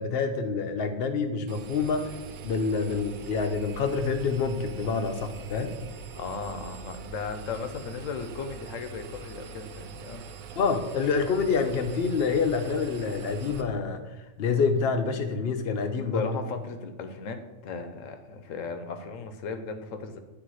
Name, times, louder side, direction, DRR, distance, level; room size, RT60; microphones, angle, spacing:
voice 1, 0.0-2.1 2.4-5.7 10.6-14.0 14.4-16.3, left 5 dB, 55° left, 7 dB, 0.8 m, -27 dB
Engine, 1.5-13.6, right 6 dB, 90° right, 1.0 m, -43 dB
voice 2, 6.1-10.2 16.1-20.2, left 5 dB, 75° left, 7 dB, 1.1 m, -36 dB
9.8 x 3.5 x 4.8 m, 1.1 s
omnidirectional pair, 1.4 m